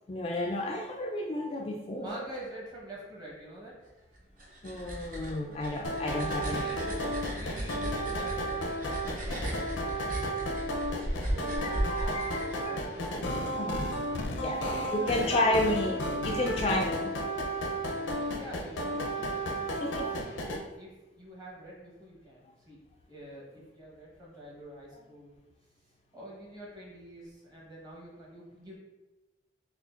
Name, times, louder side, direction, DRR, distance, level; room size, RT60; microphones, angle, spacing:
voice 1, 0.1-2.3 4.6-6.7 11.6-13.1 13.6-13.9 14.4-14.6 14.9-16.0 16.2-17.1 19.8-20.2, left 1 dB, 30° left, 1 dB, 0.3 m, -31 dB
voice 2, 2.0-3.7 6.4-8.6 9.1-10.0 11.3-13.1 14.4-16.0 18.2-19.7 20.2-22.8 23.1-25.4 26.1-28.8, right 1 dB, 20° right, -4 dB, 0.9 m, -46 dB
sound 1, 4.1-13.1, right 1 dB, 45° right, 0.8 m, -36 dB
sound 2, 5.8-20.6, equal, 80° left, 0.5 m, -33 dB
6.2 x 2.4 x 2.4 m, 1.1 s
head